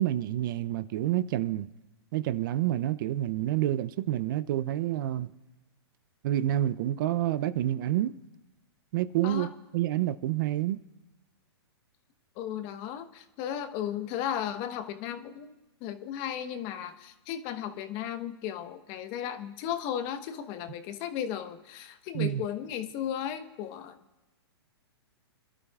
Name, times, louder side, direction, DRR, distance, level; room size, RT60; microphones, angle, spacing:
voice 1, 0.0-1.7 2.1-5.3 6.2-8.1 8.9-9.5 9.7-10.8 22.1-22.4, right 13 dB, 50° right, 0.6 m, -28 dB
voice 2, 12.4-15.5 15.8-24.0, left 10 dB, 40° left, 1.2 m, -35 dB
27.0 x 12.5 x 2.4 m
hypercardioid pair, 125°, 14 cm